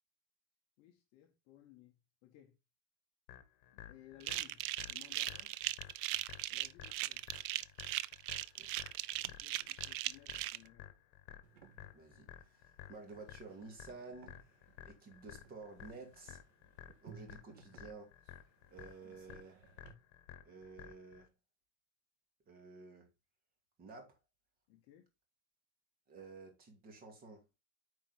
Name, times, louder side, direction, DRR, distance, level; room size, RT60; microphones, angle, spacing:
voice 1, 0.8-2.6 3.7-5.6 6.5-7.3 9.2-10.9 24.7-25.1, left 13 dB, 40° left, 1.2 m, -61 dB
sound 1, 3.3-21.3, left 11 dB, 60° left, 1.8 m, -54 dB
sound 2, 4.2-10.6, right 16 dB, 45° right, 0.4 m, -38 dB
sound 3, 11.4-19.9, right 5 dB, 85° right, 2.4 m, -61 dB
voice 2, 11.9-14.5 14.9-16.4 17.0-18.1 18.7-19.6 20.4-21.3 22.5-23.1 23.8-24.2 26.1-27.5, right 3 dB, 25° right, 2.4 m, -52 dB
9.0 x 4.6 x 4.1 m
supercardioid pair, 170°, 38 cm